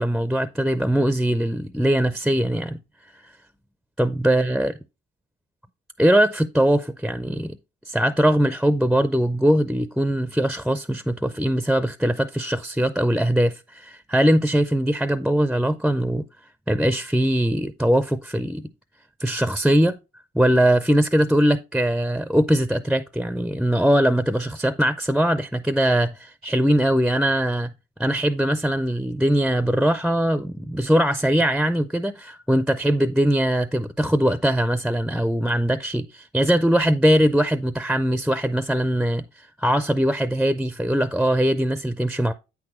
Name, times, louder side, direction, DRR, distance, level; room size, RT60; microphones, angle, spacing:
voice 1, 0.0-2.8 4.0-4.7 6.0-7.6 7.9-16.3 16.7-18.7 19.2-20.0 20.3-27.7 28.0-39.2 39.6-42.3, equal, ahead, 0.5 m, -21 dB
8.4 x 6.0 x 3.0 m
cardioid pair, 90°, 20 cm